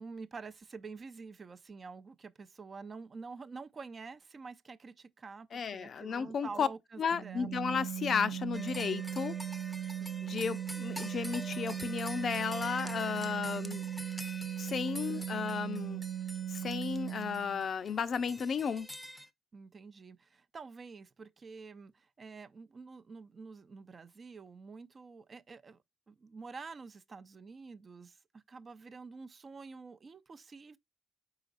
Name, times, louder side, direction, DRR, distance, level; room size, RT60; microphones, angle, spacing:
voice 1, 0.0-7.7 10.0-10.2 15.1-15.2 19.5-25.8 26.1-30.8, right 4 dB, 40° right, 0.5 m, -48 dB
voice 2, 5.5-6.7 7.0-9.4 10.2-13.9 14.6-16.0 16.5-18.9, left 6 dB, 55° left, 0.5 m, -34 dB
Organ, 7.1-17.7, right 10 dB, 85° right, 0.6 m, -38 dB
sound 1, 8.5-19.3, left 1 dB, 5° left, 0.6 m, -47 dB
4.8 x 3.9 x 2.4 m
cardioid pair, 90°, 0 cm